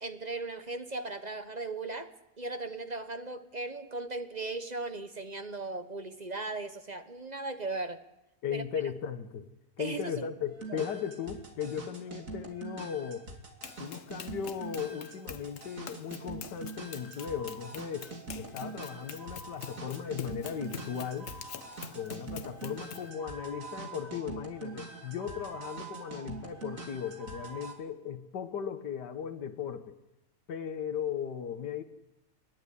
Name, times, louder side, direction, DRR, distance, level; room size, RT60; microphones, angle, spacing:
voice 1, 0.0-8.0 8.5-8.8 9.8-10.3 10.7-10.9, right 3 dB, 30° right, 9 dB, 1.0 m, -37 dB
voice 2, 8.4-9.5 9.8-13.3 13.8-21.3 21.9-29.9 30.5-31.8, left 8 dB, 90° left, 9 dB, 1.8 m, -37 dB
sound 1, 10.5-27.7, right 3 dB, 50° right, 3.1 m, -44 dB
Run, 13.6-23.1, left 7 dB, 55° left, 1.2 m, -46 dB
29.5 x 12.0 x 9.9 m, 0.96 s
omnidirectional pair, 1.8 m